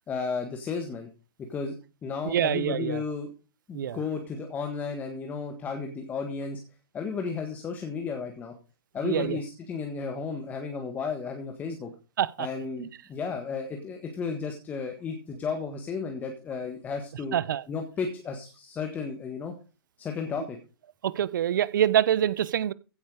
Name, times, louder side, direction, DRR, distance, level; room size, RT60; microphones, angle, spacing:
voice 1, 0.1-1.1 1.5-1.7 2.0-3.3 3.7-6.6 6.9-8.5 8.9-11.9 12.4-17.4 17.7-19.5 20.0-20.6, left 5 dB, 10° left, 1.6 m, -33 dB
voice 2, 2.2-3.0 3.7-4.0 9.0-9.4 12.2-12.5 12.8-12.9 17.3-17.6 21.0-22.7, right 10 dB, 50° right, 0.8 m, -25 dB
15.5 x 8.1 x 4.9 m
hypercardioid pair, 150°, 13 cm